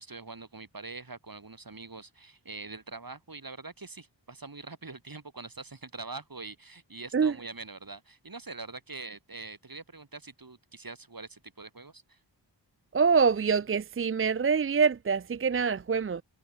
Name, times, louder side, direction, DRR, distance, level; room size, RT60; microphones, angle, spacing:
voice 1, 0.0-12.2, right 3 dB, 50° right, 5.4 m, -44 dB
voice 2, 12.9-16.2, right 5 dB, 30° right, 0.4 m, -25 dB
wide cardioid pair, 65°, 44 cm